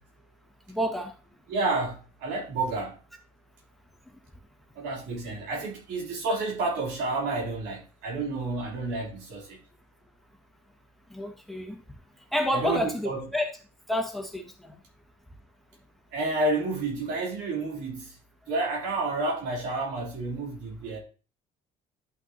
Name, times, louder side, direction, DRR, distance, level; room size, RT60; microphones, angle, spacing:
voice 1, 0.7-1.1 11.1-11.8 12.3-13.5 13.9-14.8, equal, ahead, 1.7 m, -29 dB
voice 2, 1.5-3.0 4.7-9.6 12.5-13.2 16.1-18.2 18.5-21.0, right 2 dB, 85° right, 3.2 m, -30 dB
10.5 x 6.0 x 2.8 m
cardioid pair, 110°, 17 cm